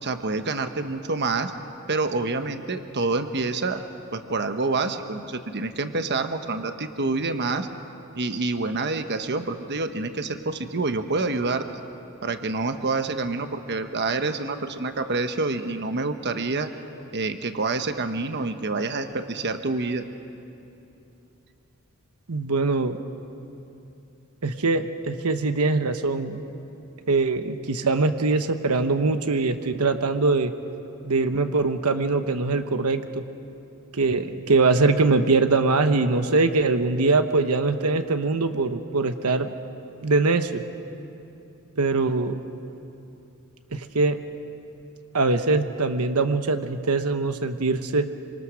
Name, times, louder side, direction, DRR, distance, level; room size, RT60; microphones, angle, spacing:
voice 1, 0.0-1.5 1.9-3.8 4.1-7.7 8.1-11.7 12.2-16.7 17.1-20.1, right 3 dB, 50° right, 8 dB, 1.1 m, -27 dB
voice 2, 22.3-23.0 24.4-26.4 27.1-30.5 31.0-33.2 33.9-39.5 40.0-40.6 41.8-42.3 43.7-44.2 45.1-48.1, right 3 dB, 90° right, 8 dB, 1.1 m, -22 dB
27.0 x 26.0 x 6.4 m, 2.8 s
head